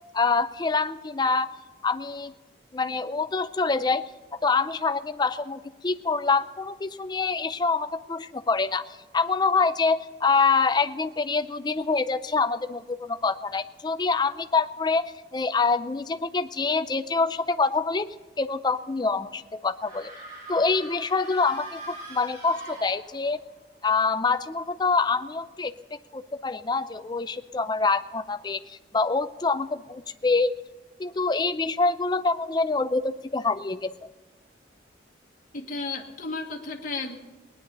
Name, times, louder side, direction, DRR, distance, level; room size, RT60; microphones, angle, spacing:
voice 1, 0.1-1.6 1.8-2.3 2.7-4.0 4.4-20.1 20.5-23.4 23.8-30.5 31.0-33.9, left 4 dB, 25° left, 12 dB, 0.4 m, -26 dB
sound 1, 19.8-23.4, right 1 dB, 45° right, 5.1 m, -43 dB
voice 2, 35.5-37.2, left 3 dB, 45° left, 1 dB, 1.4 m, -33 dB
18.5 x 10.0 x 6.6 m, 1.2 s
head